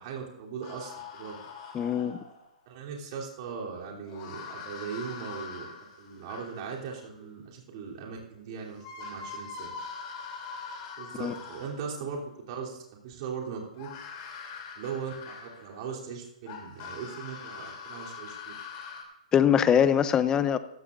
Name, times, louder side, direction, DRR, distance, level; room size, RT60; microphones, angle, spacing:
voice 1, 0.0-1.4 2.6-5.7 6.0-9.7 11.0-13.9 14.7-18.5, right 6 dB, 45° right, -3 dB, 3.3 m, -39 dB
sound 1, 0.6-2.5 4.1-7.0 8.4-8.5 8.8-12.0 13.7-15.9 16.5-19.0, left 5 dB, 35° left, 3.3 m, -43 dB
voice 2, 1.7-2.2 11.2-11.3 19.3-20.6, left 8 dB, 15° left, 13 dB, 0.6 m, -22 dB
16.0 x 14.0 x 2.6 m, 0.81 s
hypercardioid pair, 135°, 4 cm